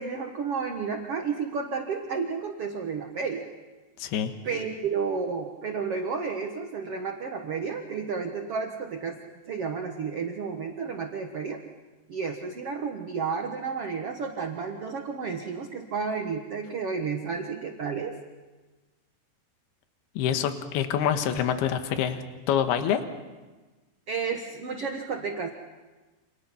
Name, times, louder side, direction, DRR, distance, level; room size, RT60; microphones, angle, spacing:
voice 1, 0.0-3.5 4.4-9.2 9.5-11.6 12.1-18.2 24.1-25.5, right 5 dB, 75° right, 3 dB, 1.3 m, -31 dB
voice 2, 4.0-4.3 20.2-22.2 22.5-23.0, left 9 dB, 70° left, 7 dB, 3.2 m, -26 dB
29.0 x 28.0 x 5.8 m, 1.2 s
omnidirectional pair, 5.1 m